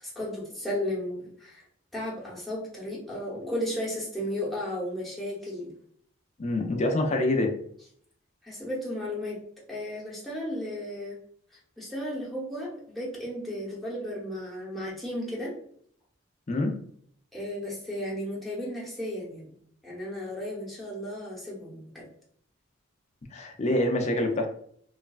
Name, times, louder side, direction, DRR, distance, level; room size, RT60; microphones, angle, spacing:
voice 1, 0.0-1.6 1.9-5.7 8.4-9.4 9.7-11.2 11.8-15.5 17.3-19.6 19.8-22.1, left 1 dB, ahead, -5 dB, 0.9 m, -34 dB
voice 2, 6.4-7.5 16.5-16.7 23.3-24.5, left 1 dB, 35° left, 3 dB, 0.4 m, -26 dB
3.1 x 2.2 x 2.3 m, 0.63 s
head